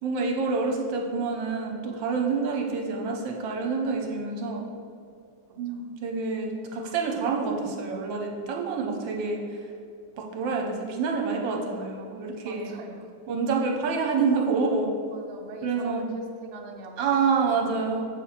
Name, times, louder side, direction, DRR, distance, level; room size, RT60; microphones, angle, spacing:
voice 1, 0.0-4.6 5.6-9.4 10.2-12.7 13.3-14.9 15.6-16.1 17.0-18.0, right 4 dB, 80° right, 1 dB, 1.5 m, -27 dB
voice 2, 12.4-13.1 15.1-17.3, right 3 dB, 60° right, 2 dB, 1.0 m, -44 dB
7.4 x 3.4 x 5.6 m, 2.4 s
omnidirectional pair, 2.1 m